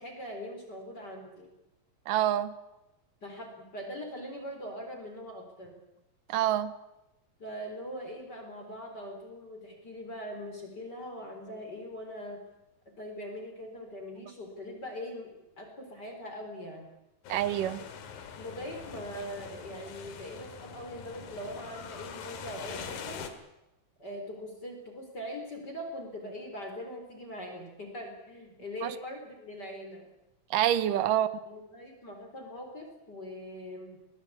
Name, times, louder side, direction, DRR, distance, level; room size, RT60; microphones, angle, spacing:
voice 1, 0.0-1.5 3.2-5.8 7.4-12.4 13.0-16.9 18.4-23.3 24.0-30.1 30.9-31.0 31.5-34.0, equal, 30° left, 4.3 m, -42 dB
voice 2, 2.1-2.6 6.3-6.8 17.3-17.8 28.8-29.0 30.5-31.3, right 12 dB, 75° right, 2.6 m, -27 dB
sound 1, 17.2-23.3, left 6 dB, 85° left, 3.6 m, -43 dB
23.0 x 18.5 x 8.5 m
omnidirectional pair, 3.9 m